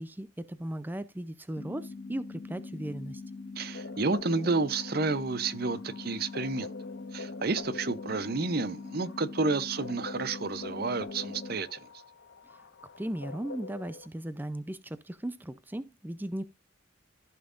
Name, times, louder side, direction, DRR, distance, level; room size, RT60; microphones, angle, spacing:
voice 1, 0.0-3.2 12.5-12.6 13.0-16.4, right 1 dB, 10° right, 0.4 m, -37 dB
sound 1, 1.6-11.6, left 3 dB, 30° left, 0.8 m, -43 dB
voice 2, 3.6-6.7 7.1-11.9, right 3 dB, 50° right, 0.7 m, -30 dB
sound 2, 3.7-14.1, left 3 dB, 70° left, 1.2 m, -46 dB
15.0 x 5.8 x 2.5 m
head